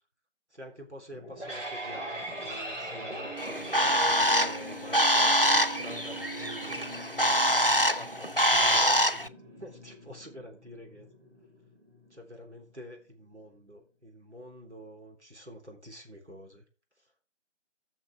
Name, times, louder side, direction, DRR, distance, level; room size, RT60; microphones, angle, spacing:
voice 1, 0.5-6.7 7.9-11.1 12.1-16.7 17.0-17.1, equal, 65° right, 2 dB, 3.6 m, -47 dB
sound 1, 1.1-12.1, right 1 dB, 80° right, 4.2 m, -41 dB
Bird, 3.4-9.3, equal, 50° left, 0.4 m, -25 dB
14.5 x 6.7 x 3.4 m, 0.34 s
figure-of-eight pair, 180°, 37 cm